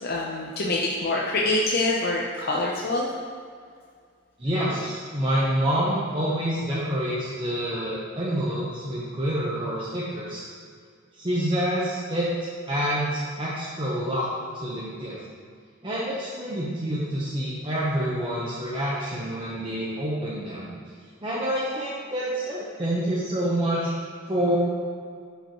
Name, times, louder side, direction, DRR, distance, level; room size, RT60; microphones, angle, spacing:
voice 1, 0.0-3.1, left 2 dB, 50° left, -4 dB, 0.7 m, -25 dB
voice 2, 4.4-10.5 11.1-12.3 12.7-14.3 14.5-15.2 15.8-20.7 21.2-24.6, right 1 dB, 25° right, -7 dB, 1.0 m, -27 dB
11.5 x 5.3 x 3.1 m, 2.1 s
head